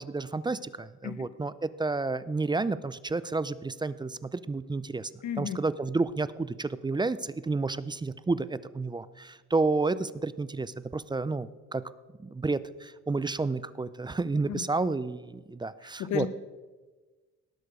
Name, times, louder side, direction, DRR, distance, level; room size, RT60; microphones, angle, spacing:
voice 1, 0.0-5.1 5.4-11.8 12.2-16.3, right 3 dB, 15° right, 16 dB, 0.4 m, -30 dB
voice 2, 5.2-5.6 14.5-14.7 15.8-16.3, left 9 dB, 70° left, 12 dB, 0.9 m, -33 dB
18.0 x 6.6 x 5.1 m, 1.3 s
cardioid pair, 90°, 30 cm